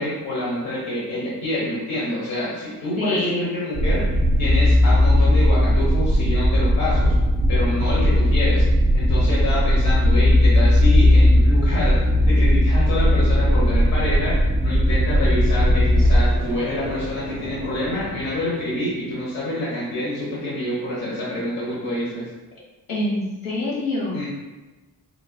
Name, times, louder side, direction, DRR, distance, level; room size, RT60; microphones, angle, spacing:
voice 1, 0.0-7.1 7.5-8.6 8.9-22.2 24.1-24.3, left 1 dB, 50° left, -7 dB, 1.1 m, -27 dB
voice 2, 3.0-3.5 22.9-24.3, left 1 dB, 75° left, -5 dB, 1.4 m, -25 dB
sound 1, 3.8-16.2, left 1 dB, 20° right, 0.4 m, -17 dB
sound 2, 15.9-19.3, equal, 20° left, 0.9 m, -32 dB
3.9 x 3.1 x 2.2 m, 1.2 s
wide cardioid pair, 165°, 34 cm